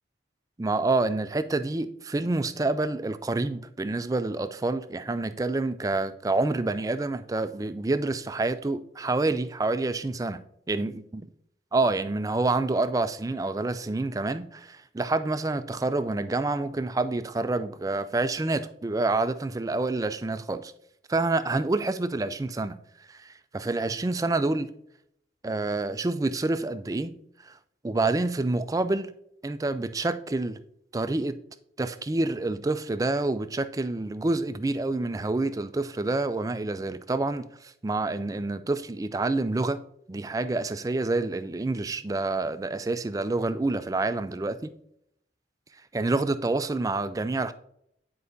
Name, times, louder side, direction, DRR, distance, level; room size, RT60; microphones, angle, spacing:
voice 1, 0.6-10.4 10.7-11.2 11.7-20.7 21.1-22.8 23.1-24.7 25.4-27.1 27.4-27.6 27.8-29.1 29.4-30.6 30.9-31.4 31.8-39.8 40.1-44.7 45.9-47.5, right 2 dB, 20° right, 0.3 m, -28 dB
9.8 x 4.7 x 2.7 m
head